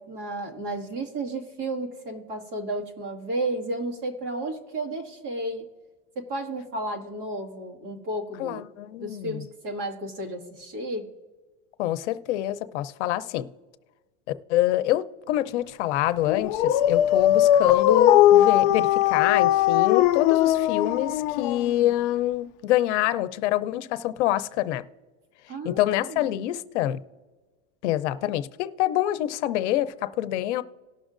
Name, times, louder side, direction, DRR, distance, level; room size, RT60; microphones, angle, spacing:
voice 1, 0.0-5.7 6.2-8.6 9.0-11.1 25.5-26.2, right 1 dB, 40° right, 1.8 m, -32 dB
voice 2, 8.4-9.4 11.8-13.5 14.5-24.8 25.6-27.0 27.8-30.6, left 14 dB, 85° left, 0.7 m, -26 dB
Dog, 16.3-21.9, left 12 dB, 50° left, 0.5 m, -20 dB
18.5 x 6.3 x 2.5 m
supercardioid pair, 175°, 34 cm